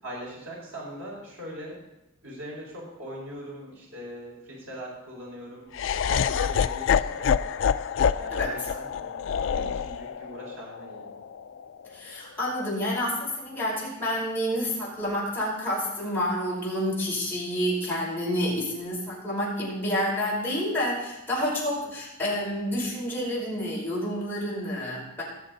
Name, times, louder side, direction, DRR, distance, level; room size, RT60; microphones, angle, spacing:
voice 1, 0.0-1.8 2.2-5.7 6.0-7.5 8.1-9.2 9.5-11.2 21.8-21.9, equal, 90° right, -4 dB, 5.0 m, -41 dB
Laughter, 5.7-11.9, left 7 dB, 65° left, 0.4 m, -27 dB
voice 2, 11.9-25.2, equal, 10° left, -7 dB, 5.3 m, -29 dB
19.0 x 7.3 x 4.0 m, 0.91 s
head